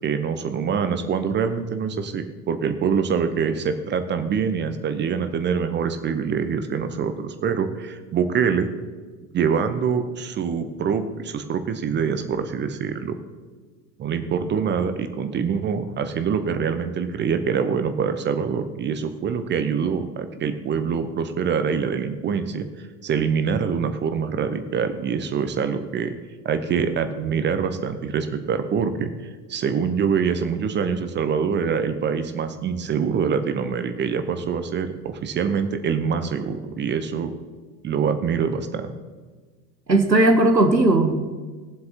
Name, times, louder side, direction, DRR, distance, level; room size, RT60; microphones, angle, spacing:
voice 1, 0.0-8.7 9.3-13.1 14.0-26.1 26.4-29.1 29.5-37.3 37.8-38.9, right 6 dB, 20° right, 9 dB, 0.8 m, -25 dB
voice 2, 39.9-41.1, right 2 dB, 90° right, 6 dB, 1.2 m, -17 dB
20.5 x 7.6 x 2.9 m, 1.4 s
figure-of-eight pair, 80°, 49 cm